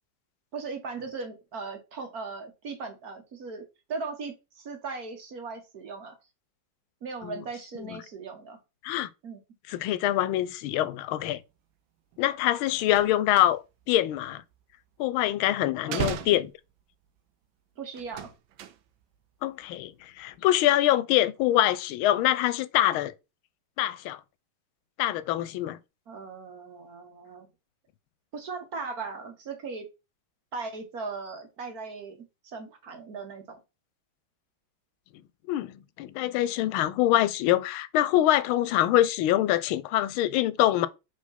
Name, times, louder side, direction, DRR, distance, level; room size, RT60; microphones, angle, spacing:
voice 1, 0.5-3.6 3.9-6.1 7.0-8.6 9.2-9.4 15.9-16.3 17.8-18.3 26.1-27.5 28.3-29.9 30.5-33.6, right 4 dB, 55° right, 1.5 m, -38 dB
voice 2, 9.7-11.4 12.2-13.6 13.9-14.4 15.0-16.5 19.4-23.1 23.8-24.2 25.0-25.8 35.5-40.9, left 13 dB, 90° left, 1.4 m, -24 dB
sound 1, 12.1-12.3 12.5-13.9 14.2-15.3 15.8-17.2 17.9-19.2 19.4-19.9 20.2-20.4, right 9 dB, 80° right, 1.4 m, -38 dB
5.1 x 3.5 x 5.5 m
omnidirectional pair, 2.2 m